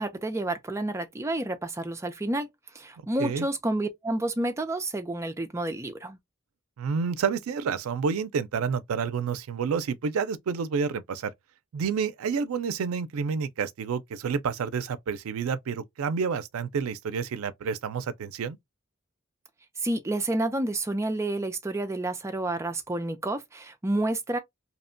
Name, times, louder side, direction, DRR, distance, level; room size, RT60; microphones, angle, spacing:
voice 1, 0.0-2.5 2.7-6.2 19.8-24.4, right 1 dB, 15° right, 0.4 m, -29 dB
voice 2, 6.8-11.3 11.7-18.6, right 6 dB, 90° right, 0.4 m, -29 dB
2.8 x 2.1 x 2.5 m
head